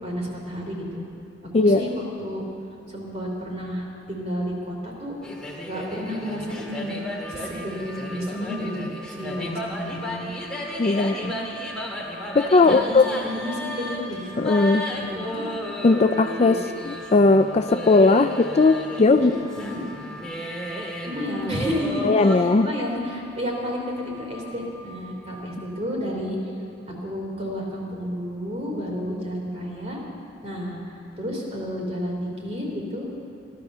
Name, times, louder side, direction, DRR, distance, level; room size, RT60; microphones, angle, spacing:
voice 1, 0.0-1.0 1.6-2.4 2.9-5.1 5.6-7.0 7.3-10.3 10.9-11.4 12.6-14.4 14.9-15.4 19.1-19.8 21.0-26.4 26.9-30.0 30.4-33.1, equal, 35° right, -1 dB, 3.3 m, -31 dB
sound 1, 5.2-22.4, equal, 5° left, 1.9 m, -34 dB
sound 2, 7.2-25.5, left 2 dB, 65° right, 4.3 m, -45 dB
voice 2, 10.8-11.3 12.3-13.1 14.4-14.9 15.8-19.3 22.0-22.7, left 3 dB, 35° left, 9 dB, 0.4 m, -18 dB
16.0 x 12.5 x 6.7 m, 2.6 s
head